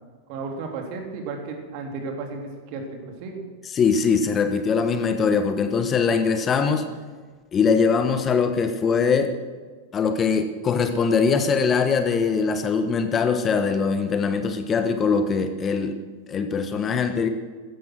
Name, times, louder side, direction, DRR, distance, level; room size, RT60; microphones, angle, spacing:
voice 1, 0.3-3.4, right 4 dB, 45° right, 2 dB, 3.5 m, -33 dB
voice 2, 3.7-6.9 7.5-9.3 9.9-16.0 16.3-17.3, left 5 dB, 25° left, 8 dB, 1.3 m, -22 dB
15.5 x 14.0 x 6.2 m, 1.5 s
figure-of-eight pair, 90°, 0 cm